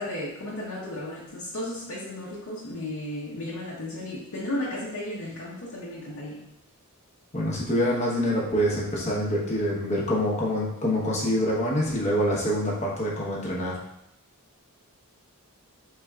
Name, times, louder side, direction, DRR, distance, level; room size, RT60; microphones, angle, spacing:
voice 1, 0.0-6.4, left 1 dB, 65° left, -7 dB, 0.8 m, -34 dB
voice 2, 7.3-13.7, equal, 30° left, -4 dB, 0.9 m, -26 dB
4.6 x 3.3 x 2.3 m, 0.80 s
head